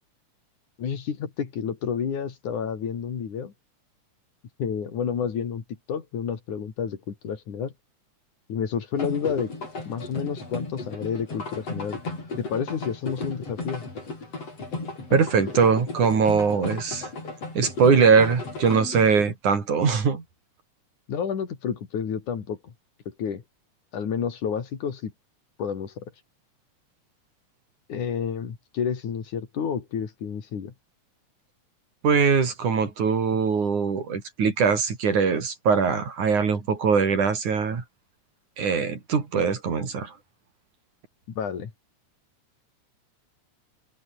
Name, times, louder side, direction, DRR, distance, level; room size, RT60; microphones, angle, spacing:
voice 1, 0.8-3.5 4.6-7.7 8.5-9.5 9.9-12.0 12.4-13.8 21.1-22.7 23.1-23.4 23.9-25.1 25.6-26.1 27.9-30.7 41.4-41.7, left 7 dB, 85° left, 4.5 m, -30 dB
sound 1, 9.0-19.3, left 3 dB, 55° left, 9.0 m, -35 dB
voice 2, 15.1-17.1 17.6-20.2 32.0-37.8 38.6-40.1, right 5 dB, 85° right, 5.6 m, -22 dB
omnidirectional pair, 3.4 m